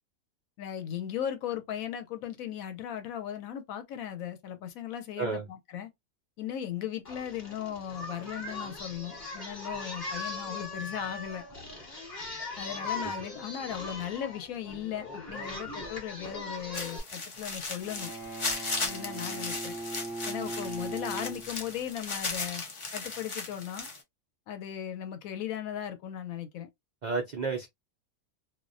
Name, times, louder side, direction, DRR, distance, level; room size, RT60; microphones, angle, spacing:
voice 1, 0.6-5.9 6.4-11.4 12.6-18.1 18.8-19.8 20.3-22.6 22.9-23.9 24.5-26.7, left 10 dB, 85° left, 1.1 m, -37 dB
Singing, 7.1-17.0, left 3 dB, 35° left, 1.1 m, -40 dB
sound 1, 16.7-24.0, left 3 dB, 50° left, 0.3 m, -36 dB
Bowed string instrument, 17.8-21.9, right 2 dB, ahead, 0.6 m, -39 dB
voice 2, 27.0-27.7, right 4 dB, 75° right, 0.4 m, -32 dB
2.5 x 2.1 x 2.5 m
omnidirectional pair, 1.4 m